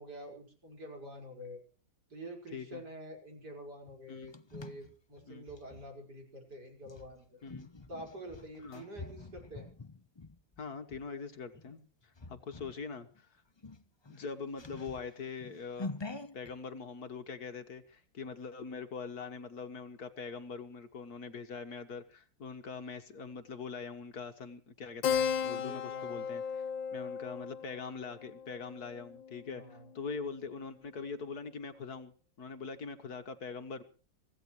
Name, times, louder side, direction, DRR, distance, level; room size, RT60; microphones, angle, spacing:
voice 1, 0.0-1.6 2.1-7.4 7.9-9.7 25.5-26.3 29.5-29.9, equal, 60° right, 2 dB, 5.8 m, -47 dB
voice 2, 2.5-2.8 4.1-4.3 5.3-5.5 7.4-7.7 8.6-8.9 10.6-13.3 14.1-15.9 16.3-26.6 26.9-33.8, left 5 dB, 60° left, 8 dB, 1.8 m, -43 dB
sound 1, 3.9-5.8 6.8-11.0 11.5-11.8 12.1-12.8 13.1-13.2 13.6-16.5, left 2 dB, 35° left, 0.4 m, -46 dB
Keyboard (musical), 25.0-30.0, left 7 dB, 85° left, 1.7 m, -36 dB
25.0 x 16.5 x 3.2 m, 0.39 s
omnidirectional pair, 2.0 m